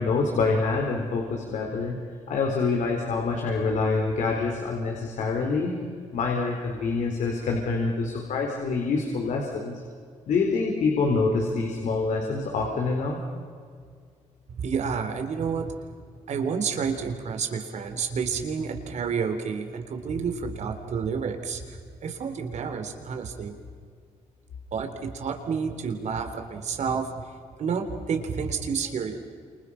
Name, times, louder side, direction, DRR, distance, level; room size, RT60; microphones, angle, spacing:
voice 1, 0.0-2.0 2.3-5.7 6.1-9.8 10.3-13.2, left 4 dB, 75° left, 1 dB, 4.3 m, -26 dB
voice 2, 14.6-15.7 16.3-23.5 24.7-27.1 27.6-29.2, right 6 dB, 65° right, 6 dB, 3.6 m, -30 dB
29.5 x 28.0 x 5.8 m, 2.1 s
cardioid pair, 90°, 13 cm